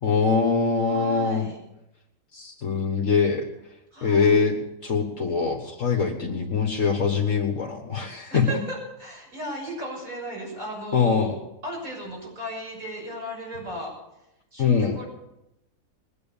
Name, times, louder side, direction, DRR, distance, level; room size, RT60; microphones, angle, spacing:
voice 1, 0.0-1.5 2.3-3.5 4.0-4.5 4.8-8.6 10.9-11.3 14.6-15.0, left 5 dB, 60° left, 2 dB, 1.8 m, -23 dB
voice 2, 0.9-1.6 3.9-4.4 8.3-11.3 11.6-13.9 14.5-15.1, equal, 65° right, -3 dB, 7.1 m, -36 dB
21.5 x 9.4 x 7.1 m, 0.90 s
omnidirectional pair, 1.5 m